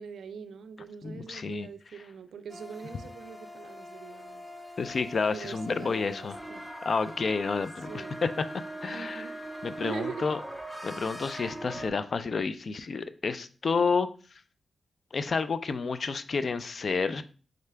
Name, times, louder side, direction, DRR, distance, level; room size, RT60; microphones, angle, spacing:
voice 1, 0.0-4.5 5.3-6.6 7.9-8.2 8.9-9.4 9.8-10.3, right 6 dB, 90° right, 0.3 m, -42 dB
voice 2, 1.0-1.7 4.8-6.4 6.8-8.3 8.8-9.3 9.6-10.4 10.8-14.1 15.1-17.2, left 4 dB, 55° left, 0.3 m, -30 dB
sound 1, 2.5-11.9, equal, ahead, 0.5 m, -42 dB
3.7 x 3.3 x 3.3 m
cardioid pair, 90°, 0 cm